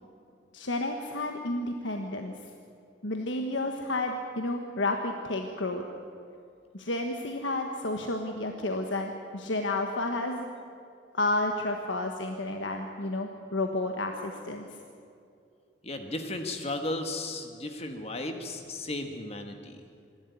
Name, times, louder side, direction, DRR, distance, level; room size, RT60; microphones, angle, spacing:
voice 1, 0.5-2.3 3.0-5.9 6.7-10.5 11.1-14.6, left 2 dB, 80° left, 3 dB, 1.4 m, -31 dB
voice 2, 15.8-19.8, left 2 dB, 35° left, 5 dB, 1.4 m, -35 dB
26.0 x 12.0 x 9.5 m, 2.5 s
head